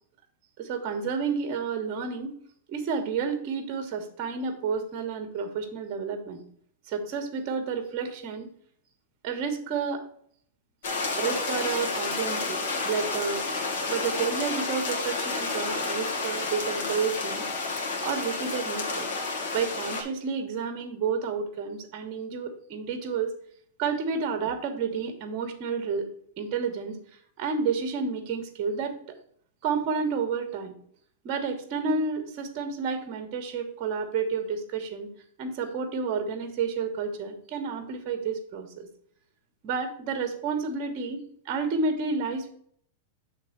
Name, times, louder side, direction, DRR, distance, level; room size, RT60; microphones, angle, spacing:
voice 1, 0.6-2.3 2.7-6.4 6.9-8.5 9.2-10.0 11.2-13.5 13.9-17.4 18.0-19.1 19.5-23.3 23.8-26.1 26.4-27.0 27.4-29.0 29.6-30.7 31.2-35.1 35.4-38.9 39.6-42.5, right 5 dB, 30° right, 6 dB, 1.1 m, -30 dB
sound 1, 10.8-20.0, left 3 dB, 70° left, 1.5 m, -30 dB
7.5 x 3.3 x 5.8 m, 0.63 s
supercardioid pair, 170°, 0 cm